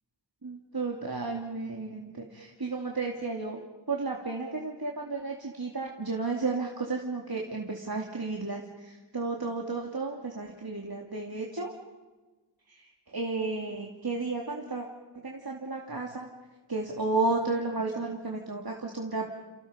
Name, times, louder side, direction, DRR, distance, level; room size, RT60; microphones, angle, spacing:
voice 1, 0.4-3.6 3.9-11.7 12.8-14.9 15.2-16.3 16.7-19.3, right 3 dB, 55° right, -1 dB, 2.8 m, -33 dB
30.0 x 29.5 x 5.2 m, 1.2 s
wide cardioid pair, 40°, 42 cm